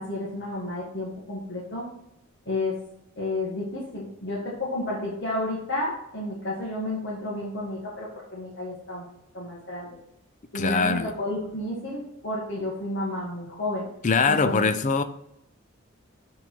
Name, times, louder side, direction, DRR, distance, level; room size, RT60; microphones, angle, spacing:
voice 1, 0.0-1.9 2.4-2.8 3.2-9.1 9.3-10.0 10.5-13.9 14.3-14.6, left 1 dB, 55° left, 1.6 m, -31 dB
voice 2, 10.5-11.1 14.0-15.0, left 4 dB, 35° left, 0.5 m, -22 dB
7.3 x 3.8 x 6.0 m
head